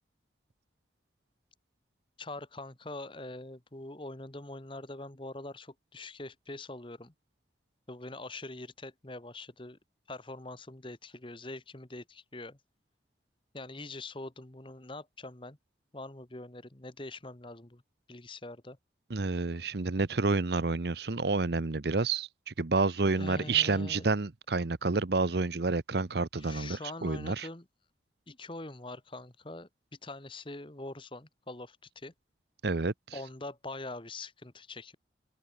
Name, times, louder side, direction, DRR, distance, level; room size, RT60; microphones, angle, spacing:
voice 1, 2.2-7.1 7.9-9.8 10.1-12.6 13.5-15.6 15.9-17.8 18.1-18.8 23.1-24.1 26.4-27.7 28.3-29.7 30.0-32.1 33.1-35.0, left 2 dB, 25° left, 1.4 m, -43 dB
voice 2, 19.1-27.5 32.6-32.9, right 3 dB, 60° right, 0.8 m, -29 dB
head